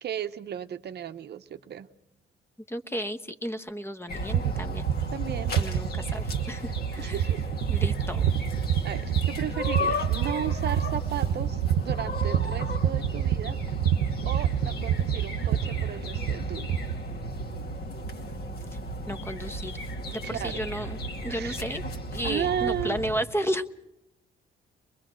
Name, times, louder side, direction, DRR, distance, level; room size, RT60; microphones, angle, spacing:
voice 1, 0.0-1.9 5.1-5.6 7.0-7.4 8.8-13.6 14.3-16.7 20.2-20.6 21.3-21.6 22.2-23.0, right 10 dB, 55° right, 10 dB, 0.7 m, -34 dB
voice 2, 2.7-4.9 5.6-7.2 7.7-8.3 19.1-19.7 20.1-21.8 22.1-23.7, equal, 10° left, 11 dB, 1.0 m, -33 dB
sound 1, 4.1-23.2, equal, 55° left, 2.5 m, -35 dB
sound 2, 4.3-17.0, right 9 dB, 90° right, 0.7 m, -28 dB
23.5 x 21.5 x 6.3 m, 0.88 s
cardioid pair, 90°, 20 cm